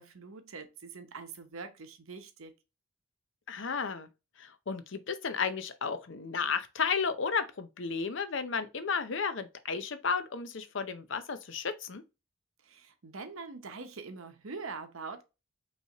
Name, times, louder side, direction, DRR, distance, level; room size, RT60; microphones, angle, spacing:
voice 1, 0.0-2.5 12.6-15.2, right 4 dB, 85° right, 0.9 m, -44 dB
voice 2, 3.5-4.1 4.4-12.0, left 5 dB, 65° left, 0.6 m, -33 dB
5.5 x 3.1 x 2.9 m
head